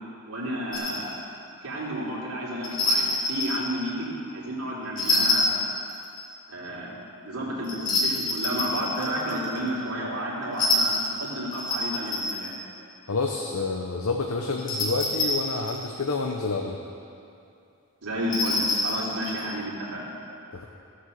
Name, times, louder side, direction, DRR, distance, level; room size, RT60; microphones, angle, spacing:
voice 1, 0.3-1.1 1.6-5.6 6.5-6.9 7.2-12.5 18.0-20.1, equal, 85° right, -6 dB, 3.3 m, -31 dB
sound 1, 0.7-1.0 2.6-3.7 5.0-6.2 7.6-9.6 10.5-12.5 14.6-15.9 18.2-19.5, left 2 dB, 40° left, 1.8 m, -26 dB
voice 2, 13.1-16.8 20.5-20.6, left 3 dB, 80° left, 1 dB, 0.9 m, -28 dB
16.0 x 7.3 x 6.6 m, 2.6 s
head